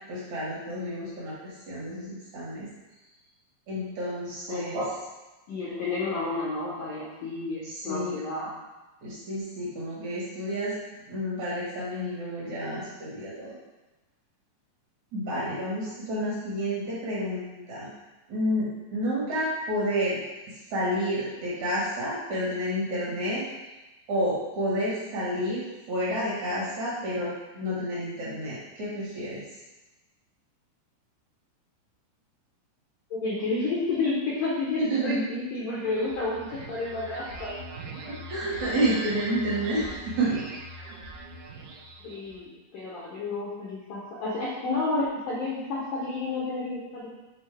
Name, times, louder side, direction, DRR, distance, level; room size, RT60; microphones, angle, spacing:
voice 1, 0.1-2.7 3.7-4.9 7.6-8.2 9.0-10.8 11.1-13.6 15.1-17.9 18.3-20.2 20.7-23.5 24.1-29.4 34.8-35.2 38.3-40.4, equal, 60° right, -7 dB, 2.0 m, -30 dB
voice 2, 5.5-8.5 33.1-37.5 42.0-47.1, left 3 dB, 80° left, -7 dB, 1.9 m, -31 dB
sound 1, 35.8-42.4, right 2 dB, 80° right, 2.5 m, -41 dB
8.0 x 4.0 x 3.4 m, 1.1 s
omnidirectional pair, 5.3 m